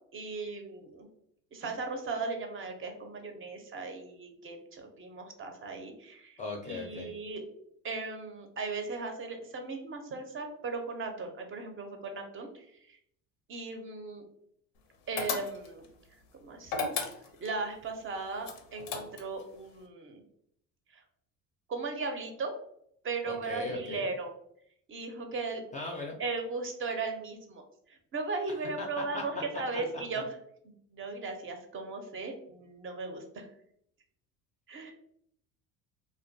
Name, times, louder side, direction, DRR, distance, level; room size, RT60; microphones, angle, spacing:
voice 1, 0.1-1.1 1.5-6.4 6.6-7.4 7.8-13.0 13.5-14.2 15.1-15.9 16.4-16.8 17.4-20.2 20.9-21.0 21.7-22.5 23.0-24.3 24.9-25.6 26.2-27.6 27.9-30.3 30.9-33.5 34.7-34.9, right 3 dB, 35° right, 4 dB, 0.5 m, -37 dB
voice 2, 6.4-7.1 23.2-24.1 25.7-26.2 28.8-29.2 29.9-30.2, left 2 dB, 20° left, 0 dB, 0.4 m, -38 dB
sound 1, 15.2-15.9 16.7-17.6 18.4-19.4, left 5 dB, 80° left, 0.5 m, -34 dB
2.2 x 2.1 x 2.6 m, 0.69 s
supercardioid pair, 85°, 36 cm